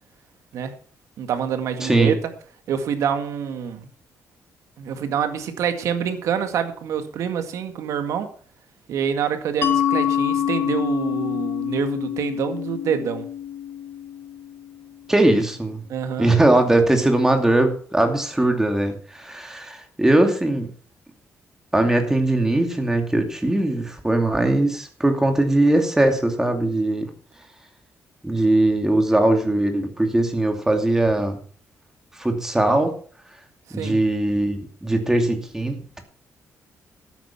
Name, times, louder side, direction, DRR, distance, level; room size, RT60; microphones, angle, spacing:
voice 1, 1.2-2.1 2.7-3.9 4.8-8.3 8.9-13.3 15.9-16.3 33.7-34.0, right 8 dB, 85° right, 8 dB, 2.0 m, -26 dB
voice 2, 1.8-2.2 15.1-15.8 16.2-20.7 21.7-27.1 28.2-31.3 32.2-33.0 33.7-36.0, right 1 dB, 10° right, 5 dB, 2.6 m, -20 dB
Mallet percussion, 9.6-15.0, left 10 dB, 50° left, 1.6 m, -26 dB
12.5 x 9.4 x 5.8 m, 0.43 s
cardioid pair, 130°, 5 cm